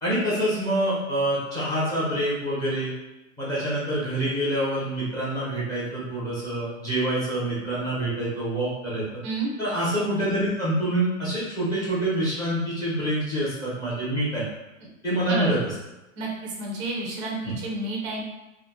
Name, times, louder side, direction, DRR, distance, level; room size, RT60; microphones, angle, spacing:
voice 1, 0.0-2.9 3.4-9.0 9.6-14.4 15.0-15.6 17.4-17.5, right 1 dB, 10° left, -8 dB, 0.7 m, -26 dB
voice 2, 15.3-15.6 16.2-18.2, right 3 dB, 25° right, -2 dB, 0.4 m, -30 dB
2.4 x 2.1 x 3.5 m, 0.96 s
hypercardioid pair, 150°, 40 cm